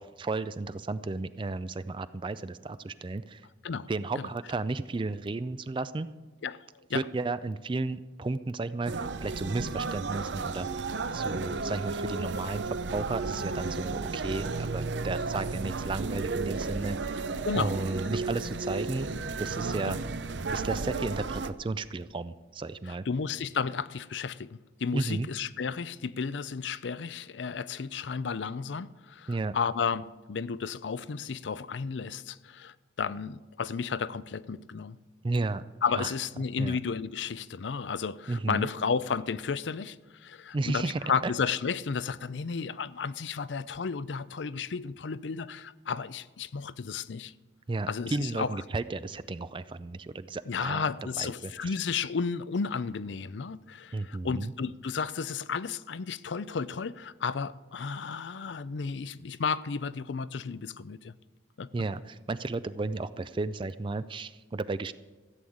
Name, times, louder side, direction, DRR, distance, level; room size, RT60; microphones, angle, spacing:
voice 1, 0.0-3.4 3.9-6.1 6.9-10.9 11.1-17.2 17.5-19.1 19.4-20.0 20.5-23.0 24.9-25.3 29.3-29.6 35.2-35.6 35.9-36.1 36.6-36.8 38.3-38.7 40.5-41.3 47.7-50.9 51.2-51.7 53.9-54.5 61.7-64.9, right 3 dB, 25° right, 0.4 m, -33 dB
sound 1, 8.9-21.5, right 4 dB, 75° right, 0.6 m, -33 dB
voice 2, 22.9-35.0 35.8-47.3 47.9-48.6 50.5-61.1 61.6-61.7, left 5 dB, 80° left, 0.5 m, -33 dB
14.5 x 8.0 x 8.6 m
head